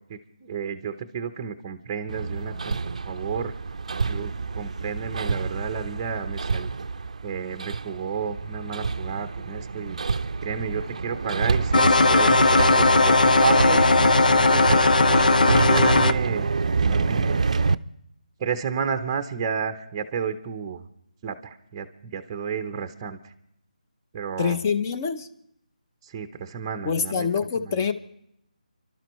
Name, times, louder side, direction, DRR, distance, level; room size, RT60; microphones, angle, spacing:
voice 1, 0.1-3.5 4.0-6.8 7.2-10.0 10.4-14.9 15.4-16.5 16.8-17.4 18.4-20.8 21.2-21.9 22.1-23.3 24.1-24.6 26.0-27.3 27.6-27.8, right 6 dB, 15° right, 0.7 m, -31 dB
Hammer, 2.1-17.8, right 4 dB, 55° right, 0.5 m, -27 dB
sound 1, 11.7-16.1, left 3 dB, 85° left, 0.7 m, -18 dB
voice 2, 24.4-25.3 26.8-27.9, left 6 dB, 20° left, 0.7 m, -25 dB
30.0 x 12.0 x 3.1 m
figure-of-eight pair, 170°, 4 cm